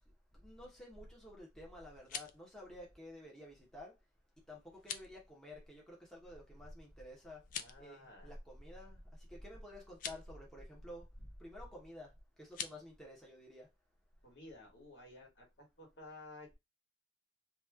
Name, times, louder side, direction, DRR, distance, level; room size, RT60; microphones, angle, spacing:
voice 1, 0.4-3.9 4.5-7.4 7.8-9.0 9.3-12.1 12.4-13.7, left 1 dB, 5° left, 0.8 m, -51 dB
sound 1, 1.9-2.4 4.7-5.1 7.4-7.9 9.9-10.2 12.5-12.8, left 8 dB, 45° left, 0.4 m, -44 dB
voice 2, 7.5-8.3 14.2-16.6, left 2 dB, 60° left, 1.5 m, -54 dB
3.0 x 2.3 x 3.4 m
head